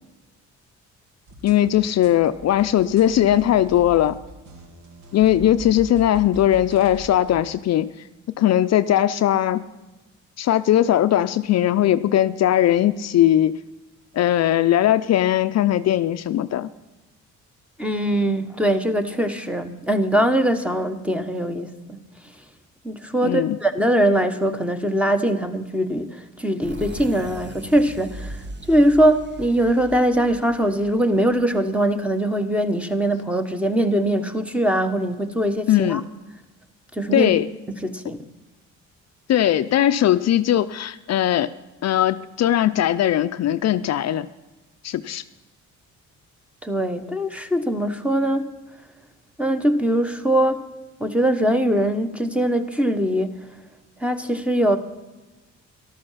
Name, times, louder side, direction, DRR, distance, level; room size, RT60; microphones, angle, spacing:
sound 1, 1.3-7.4, right 1 dB, 70° right, 2.4 m, -41 dB
voice 1, 1.4-4.2 5.1-7.9 8.4-9.7 10.4-13.6 14.1-16.7 23.2-23.6 35.7-36.0 37.1-37.5 39.3-41.5 41.8-44.3 44.8-45.2, left 12 dB, 60° left, 11 dB, 0.5 m, -19 dB
voice 2, 17.8-22.0 22.8-36.0 37.0-37.3 37.8-38.2 46.6-48.6 49.4-50.6 51.0-53.4 54.0-54.8, right 1 dB, 5° right, 8 dB, 1.2 m, -22 dB
sound 2, 26.6-32.1, right 2 dB, 35° right, 1.3 m, -39 dB
13.5 x 12.0 x 5.7 m, 1.1 s
cardioid pair, 90°, 30 cm